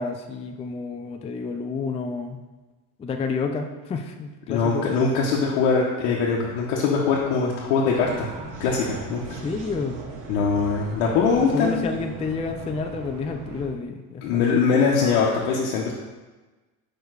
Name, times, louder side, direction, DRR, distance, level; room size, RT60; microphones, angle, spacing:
voice 1, 0.0-2.4 3.0-4.9 9.4-10.0 11.2-14.4, left 4 dB, 15° left, 5 dB, 0.4 m, -30 dB
voice 2, 4.5-8.3 8.6-9.4 10.3-11.9 14.2-15.9, left 5 dB, 85° left, -3 dB, 1.0 m, -22 dB
sound 1, 7.9-13.7, right 3 dB, 55° right, 1.1 m, -38 dB
4.9 x 4.6 x 4.7 m, 1.2 s
cardioid pair, 115°, 39 cm